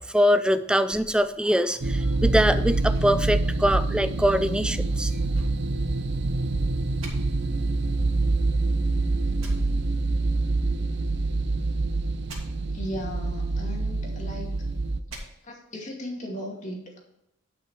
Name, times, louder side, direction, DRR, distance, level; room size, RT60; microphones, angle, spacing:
voice 1, 0.1-5.1, equal, 5° right, 11 dB, 0.4 m, -23 dB
sound 1, 0.9-2.3 2.9-4.2 5.3-6.5 7.0-7.1 9.4-9.5 12.3-12.4 15.1-15.2, right 2 dB, 70° right, 2.6 m, -44 dB
sound 2, 1.8-15.0, right 2 dB, 55° right, 0.6 m, -26 dB
voice 2, 12.7-14.5 15.4-17.0, equal, 35° left, -1 dB, 2.3 m, -36 dB
10.5 x 5.9 x 4.7 m, 0.84 s
head